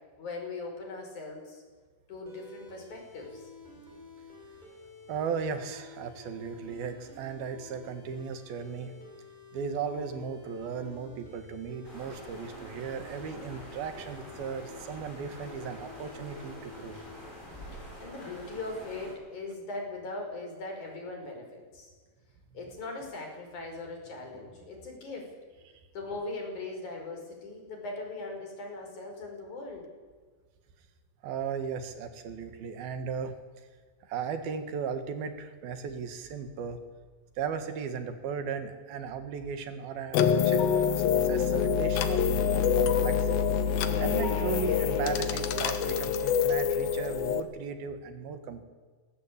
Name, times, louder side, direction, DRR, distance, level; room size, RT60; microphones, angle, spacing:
voice 1, 0.2-1.6 2.1-3.5 17.7-21.9 22.5-25.3 25.9-29.9, left 2 dB, 55° left, 2 dB, 6.5 m, -40 dB
sound 1, 2.3-17.2, left 3 dB, 10° right, 6.8 m, -51 dB
voice 2, 5.1-8.9 9.5-17.0 31.2-33.4 34.1-36.8 37.4-48.6, right 6 dB, 85° right, 9 dB, 3.6 m, -36 dB
sound 2, 11.8-19.1, equal, 10° left, 7.2 m, -46 dB
sound 3, 40.1-47.4, left 7 dB, 80° left, 3.1 m, -26 dB
20.5 x 18.0 x 8.7 m, 1.5 s
omnidirectional pair, 4.2 m